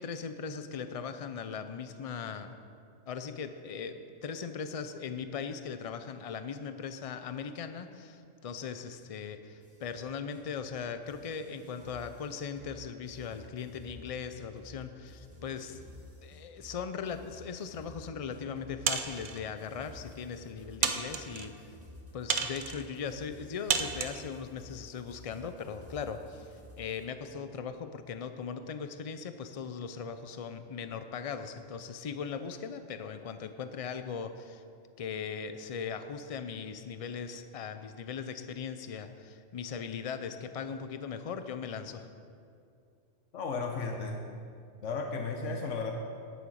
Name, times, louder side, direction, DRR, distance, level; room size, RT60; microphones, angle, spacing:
voice 1, 0.0-2.5 3.1-15.8 16.2-21.7 22.1-34.6 35.0-42.1, left 6 dB, 40° left, 9 dB, 0.5 m, -39 dB
sound 1, 9.6-27.0, left 1 dB, 10° right, 1.9 m, -52 dB
sound 2, 18.9-19.4 20.1-20.2 20.8-21.5 22.3-22.8 23.7-24.2, right 6 dB, 50° right, 0.8 m, -31 dB
voice 2, 43.3-44.3 44.8-45.9, left 4 dB, 85° left, 3 dB, 1.2 m, -34 dB
10.0 x 9.2 x 6.4 m, 2.4 s
omnidirectional pair, 1.2 m